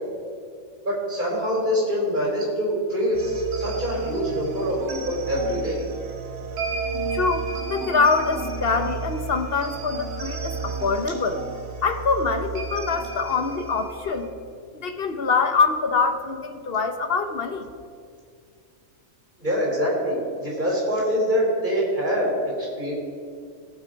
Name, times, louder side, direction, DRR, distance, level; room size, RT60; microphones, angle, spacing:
voice 1, 0.8-5.9 19.4-22.9, equal, 35° right, -3 dB, 4.0 m, -25 dB
sound 1, 3.1-14.3, right 4 dB, 50° right, 1.3 m, -32 dB
voice 2, 7.1-11.4 11.8-14.3 14.7-17.7, left 4 dB, 50° left, 8 dB, 0.9 m, -24 dB
18.0 x 7.5 x 5.2 m, 2.3 s
omnidirectional pair, 1.5 m